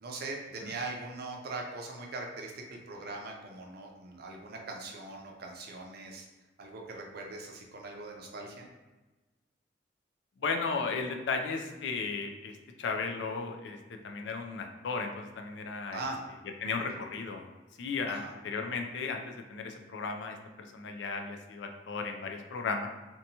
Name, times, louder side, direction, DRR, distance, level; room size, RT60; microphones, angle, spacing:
voice 1, 0.0-6.3 6.6-8.7 15.9-16.2 18.1-18.3, right 3 dB, 60° right, 1 dB, 0.5 m, -41 dB
voice 2, 10.4-12.5 12.8-13.8 14.0-16.0 16.6-17.5 17.8-20.4 20.7-22.9, left 4 dB, 70° left, 4 dB, 0.4 m, -35 dB
2.7 x 2.2 x 2.7 m, 1.2 s
head